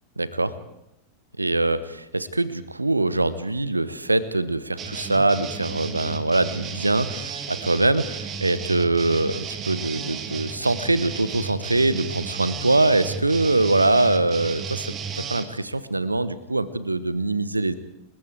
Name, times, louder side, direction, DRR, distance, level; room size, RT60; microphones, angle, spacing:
voice 1, 0.2-0.6 1.4-17.7, right 2 dB, 85° right, 15 dB, 1.2 m, -23 dB
sound 1, 4.8-15.5, right 6 dB, 30° right, 2.2 m, -33 dB
29.5 x 21.5 x 4.8 m, 0.82 s
figure-of-eight pair, 90°, 0 cm